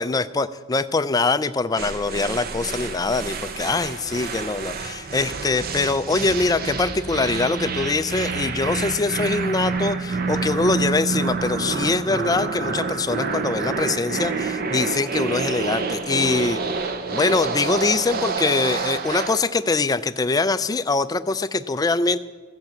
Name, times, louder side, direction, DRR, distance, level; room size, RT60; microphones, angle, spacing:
voice 1, 0.0-16.6 17.1-22.2, left 3 dB, 20° left, 13 dB, 0.3 m, -23 dB
sound 1, 1.8-19.4, right 4 dB, 45° right, 0.8 m, -28 dB
15.5 x 8.0 x 7.2 m, 1.4 s
head